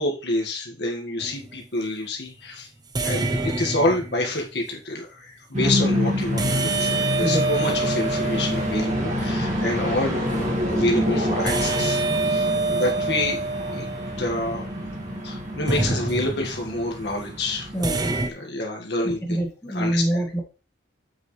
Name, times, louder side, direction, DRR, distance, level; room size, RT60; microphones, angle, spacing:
voice 1, 0.0-2.7 3.0-13.4 13.7-13.9 14.2-14.6 15.2-17.7 18.4-19.4 19.7-20.2, left 1 dB, 60° left, 1 dB, 1.7 m, -28 dB
sound 1, 1.2-1.5 2.9-4.5 6.4-9.4 11.5-14.8 15.7-16.7 17.8-18.3, right 3 dB, 20° right, 0.6 m, -27 dB
sound 2, 5.5-18.0, equal, 40° right, 1.9 m, -27 dB
voice 2, 7.2-7.7 17.7-18.1 19.0-20.4, right 1 dB, 15° left, 1 dB, 1.1 m, -26 dB
7.5 x 6.2 x 3.2 m, 0.31 s
head